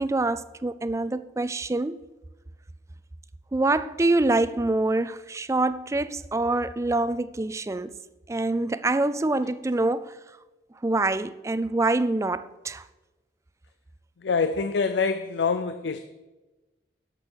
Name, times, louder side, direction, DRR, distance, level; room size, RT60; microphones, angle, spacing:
voice 1, 0.0-2.0 3.5-8.0 8.3-10.2 10.8-12.8, right 2 dB, 15° right, 0.3 m, -25 dB
voice 2, 14.2-16.0, left 5 dB, 90° left, 0.5 m, -25 dB
11.5 x 6.8 x 6.2 m
head